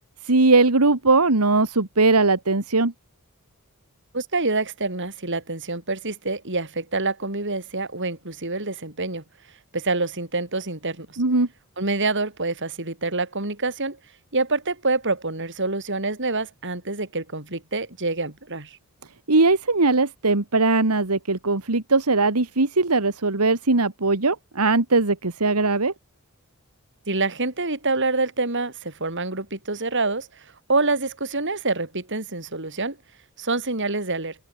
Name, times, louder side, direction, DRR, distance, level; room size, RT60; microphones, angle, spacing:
voice 1, 0.2-2.9 11.2-11.5 19.3-25.9, right 3 dB, 90° right, 2.0 m, -20 dB
voice 2, 4.1-9.2 9.7-11.2 11.8-14.0 14.3-18.8 27.1-33.0 33.4-34.4, right 3 dB, 55° right, 7.4 m, -26 dB
open air
head